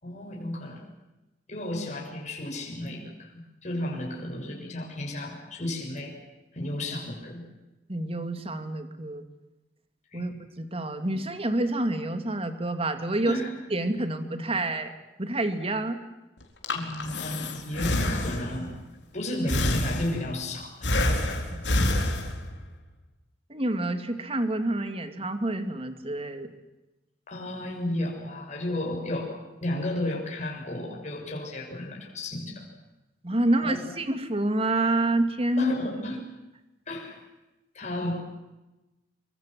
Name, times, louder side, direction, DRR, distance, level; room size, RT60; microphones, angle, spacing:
voice 1, 0.0-0.8 1.5-6.1 6.5-7.4 10.1-10.2 13.2-13.5 16.7-18.7 19.1-21.1 27.3-32.7 33.6-33.8 35.6-36.2 36.9-37.2 37.7-38.2, left 1 dB, 40° left, -1 dB, 6.7 m, -33 dB
voice 2, 7.9-9.3 10.1-13.4 13.7-14.9 15.2-16.0 21.8-22.1 23.5-26.5 33.2-35.7, right 2 dB, 35° right, 8 dB, 2.5 m, -28 dB
Breathing, 16.4-18.7 19.5-20.4 20.8-22.6, left 1 dB, 80° left, 4.2 m, -27 dB
25.5 x 24.5 x 7.7 m, 1.0 s
head